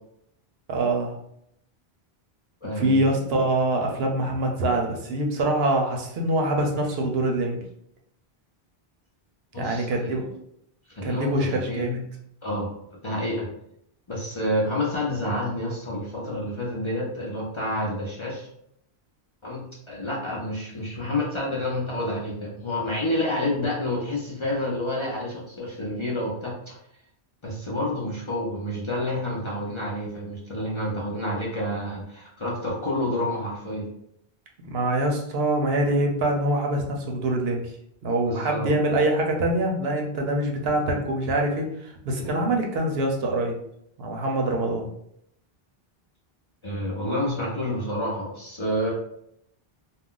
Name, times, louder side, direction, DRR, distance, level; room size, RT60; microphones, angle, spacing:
voice 1, 0.7-1.1 2.8-7.6 9.6-10.3 11.0-12.0 34.6-37.6 38.0-43.6 44.0-44.9, right 1 dB, 75° right, 1 dB, 0.8 m, -24 dB
voice 2, 2.6-3.1 9.5-10.1 10.9-12.0 12.4-12.8 13.0-13.5 14.1-18.5 19.4-26.8 27.4-33.9 38.2-38.7 42.2-42.4 46.6-48.9, left 1 dB, 35° left, -4 dB, 0.5 m, -29 dB
2.4 x 2.2 x 3.7 m, 0.74 s
omnidirectional pair, 1.1 m